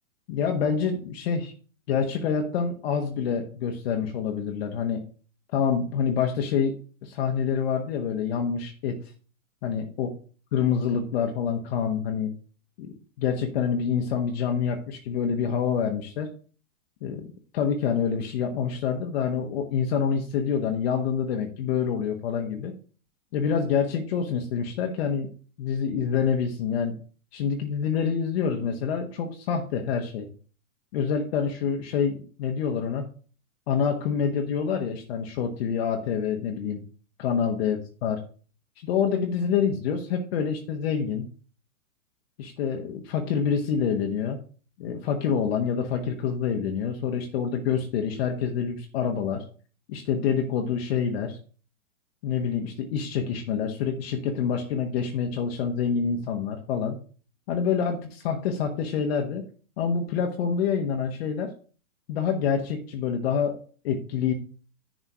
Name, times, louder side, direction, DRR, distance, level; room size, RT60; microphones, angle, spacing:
voice 1, 0.3-1.5 1.9-5.0 5.5-6.7 7.0-9.0 9.6-10.1 10.5-12.3 12.8-16.3 17.0-22.7 23.3-25.3 25.6-26.9 27.3-30.3 30.9-33.1 33.7-36.8 37.2-38.2 38.8-41.3 42.4-44.4 44.8-49.4 49.9-51.4 52.2-57.0 57.5-59.5 59.8-61.5 62.1-63.6 63.8-64.3, left 7 dB, 45° left, 3 dB, 1.3 m, -27 dB
10.0 x 4.0 x 4.9 m, 0.40 s
hypercardioid pair, 120°, 43 cm